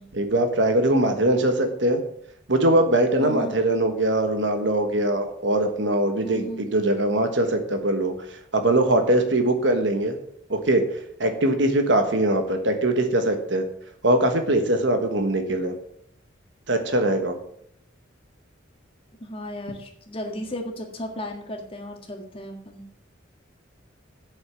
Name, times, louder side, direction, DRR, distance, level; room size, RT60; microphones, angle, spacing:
voice 1, 0.1-2.0 2.5-10.2 10.5-10.8 11.2-13.6 14.0-15.7 16.7-17.4, right 1 dB, 60° right, 6 dB, 1.4 m, -22 dB
voice 2, 3.2-3.5 6.2-6.7 19.2-22.8, equal, 30° left, 3 dB, 1.7 m, -35 dB
8.1 x 7.0 x 6.9 m, 0.69 s
head